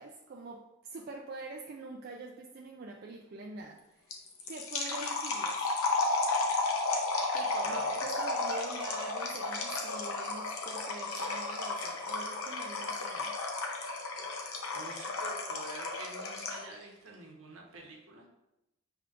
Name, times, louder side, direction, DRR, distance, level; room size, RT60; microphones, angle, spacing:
voice 1, 0.0-4.2 4.5-5.6 6.9-13.3, right 2 dB, 45° right, 1 dB, 0.3 m, -45 dB
sound 1, 4.1-16.7, left 3 dB, 90° left, 0.7 m, -33 dB
voice 2, 7.6-8.0 14.7-18.3, right 2 dB, 70° right, 0 dB, 1.0 m, -46 dB
5.9 x 3.5 x 2.4 m, 0.91 s
head